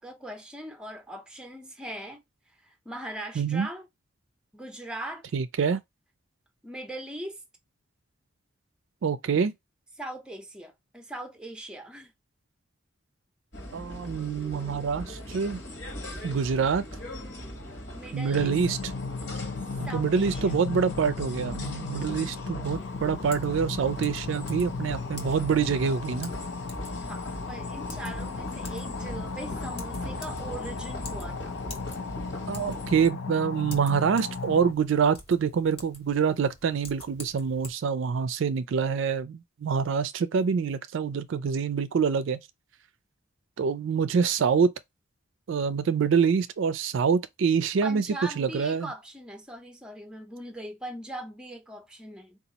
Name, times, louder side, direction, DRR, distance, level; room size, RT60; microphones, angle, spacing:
voice 1, 0.0-2.2 2.6-3.9 4.5-5.2 6.6-7.4 10.0-12.1 17.9-18.5 19.9-20.5 27.0-31.6 47.8-52.4, right 1 dB, 5° right, 0.6 m, -40 dB
voice 2, 3.4-3.7 5.3-5.8 9.0-9.5 13.7-15.6 16.2-16.8 18.1-18.8 19.8-26.3 32.5-42.4 43.6-44.7 45.5-48.0 48.4-48.9, right 6 dB, 70° right, 0.4 m, -26 dB
sound 1, 13.5-33.1, equal, 55° left, 1.2 m, -40 dB
sound 2, 18.3-34.7, left 4 dB, 80° left, 0.5 m, -36 dB
Typing, 22.6-37.7, left 2 dB, 30° left, 0.8 m, -48 dB
4.1 x 2.4 x 2.8 m
head